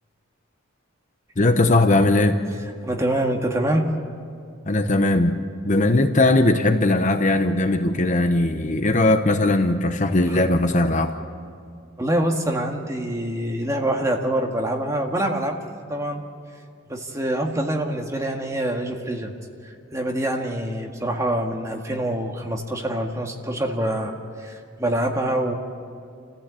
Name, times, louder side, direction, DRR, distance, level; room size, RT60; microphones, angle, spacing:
voice 1, 1.4-2.4 4.7-5.4 5.6-11.1, left 2 dB, 35° left, 7 dB, 0.9 m, -19 dB
voice 2, 2.8-3.9 10.3-10.4 12.0-15.6 15.9-16.2 16.9-19.3 19.6-24.1 24.4-25.6, right 1 dB, 15° right, 2 dB, 1.9 m, -25 dB
29.0 x 15.0 x 8.4 m, 2.3 s
head